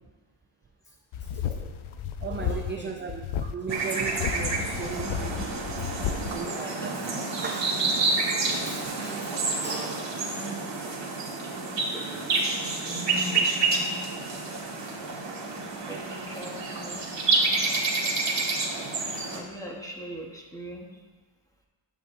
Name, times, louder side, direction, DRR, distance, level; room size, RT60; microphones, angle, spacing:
sound 1, 1.1-2.8 3.1-3.5 4.1-6.3, left 8 dB, 80° left, 0.6 m, -32 dB
voice 1, 1.4-1.7 2.4-2.9 6.1-7.2 9.4-9.7 11.9-12.4 12.8-13.5 14.3-15.3 15.8-17.0 18.7-21.0, right 1 dB, 5° left, -1 dB, 1.2 m, -43 dB
voice 2, 2.2-5.5 5.8-7.8 8.6-9.4 9.6-10.2, right 5 dB, 25° right, 2 dB, 0.4 m, -37 dB
sound 2, 3.7-19.4, right 3 dB, 60° right, 1.6 m, -29 dB
11.0 x 8.1 x 2.6 m, 1.3 s
wide cardioid pair, 155°, 48 cm